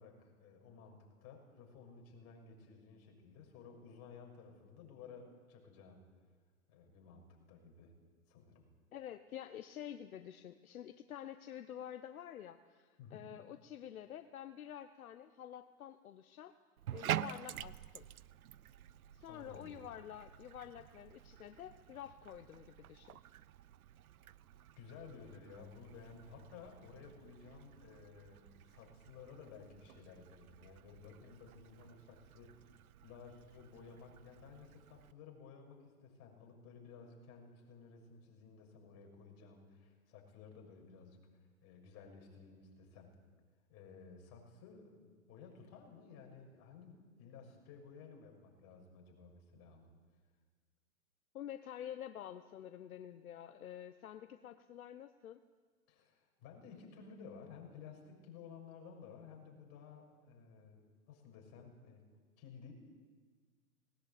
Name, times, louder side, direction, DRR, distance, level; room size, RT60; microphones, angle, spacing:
voice 1, 0.0-6.1 6.7-7.9 8.3-8.7 13.0-13.3 19.3-19.9 24.8-43.2 43.7-49.9 55.9-62.0 62.4-62.7, left 5 dB, 35° left, 2 dB, 6.4 m, -55 dB
voice 2, 8.9-16.5 16.9-18.1 19.1-23.2 51.3-55.4, left 10 dB, 70° left, 10 dB, 1.1 m, -49 dB
Bathtub (filling or washing), 16.8-35.1, right 12 dB, 70° right, 0.7 m, -48 dB
19.5 x 18.5 x 8.6 m, 1.5 s
hypercardioid pair, 125°, 44 cm